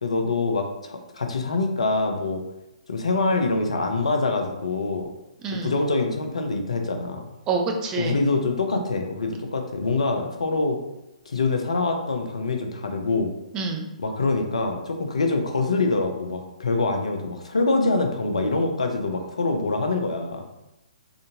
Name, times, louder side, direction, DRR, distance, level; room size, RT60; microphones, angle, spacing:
voice 1, 0.0-2.4 2.9-5.1 5.6-7.2 8.0-10.8 11.3-13.3 14.0-20.5, left 3 dB, 65° left, 4 dB, 0.6 m, -25 dB
voice 2, 5.4-5.7 7.5-8.2 13.5-13.9, right 4 dB, 20° right, 2 dB, 0.5 m, -27 dB
3.7 x 2.6 x 2.7 m, 0.95 s
figure-of-eight pair, 125°, 4 cm